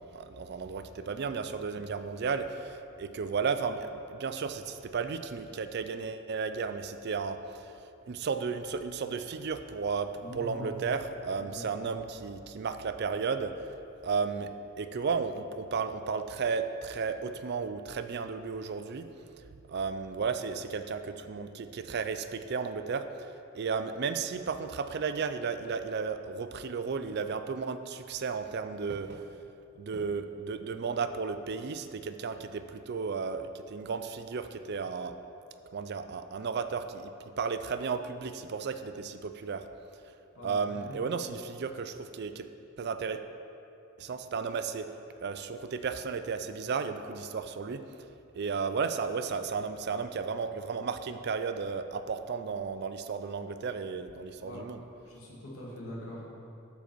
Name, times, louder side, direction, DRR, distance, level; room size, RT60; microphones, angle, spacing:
voice 1, 0.0-7.7 8.1-13.5 14.0-14.5 14.8-19.1 19.5-29.4 29.8-35.2 35.7-39.6 40.4-42.5 42.8-43.2 44.0-44.9 45.2-47.8 48.3-54.8, right 5 dB, 50° right, 10 dB, 0.4 m, -34 dB
voice 2, 10.2-10.7 11.4-12.0 40.4-41.3 54.4-54.6 55.1-56.3, left 1 dB, 80° left, -5 dB, 2.4 m, -43 dB
13.5 x 5.1 x 4.6 m, 2.7 s
head